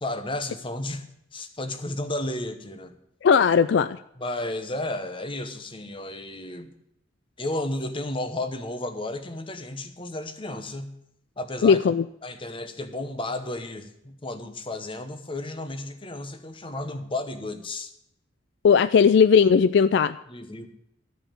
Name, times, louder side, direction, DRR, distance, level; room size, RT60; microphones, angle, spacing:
voice 1, 0.0-1.0 1.3-3.0 4.2-6.7 7.4-10.9 11.4-11.8 12.2-17.9 20.3-20.7, left 1 dB, 25° left, 8 dB, 1.1 m, -33 dB
voice 2, 3.2-4.0 11.6-12.0 18.6-20.2, left 6 dB, 65° left, 14 dB, 0.3 m, -18 dB
13.0 x 5.8 x 8.7 m, 0.77 s
head